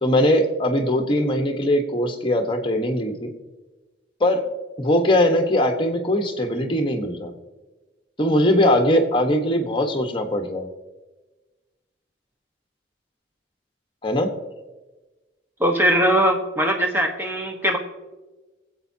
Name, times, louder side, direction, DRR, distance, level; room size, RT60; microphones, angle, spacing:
voice 1, 0.0-3.3 4.2-4.4 4.8-7.3 8.2-10.7 14.0-14.3, left 1 dB, 30° left, 4 dB, 1.3 m, -20 dB
voice 2, 15.6-17.8, right 1 dB, 10° right, 2 dB, 1.3 m, -20 dB
23.0 x 8.3 x 2.8 m, 1.2 s
head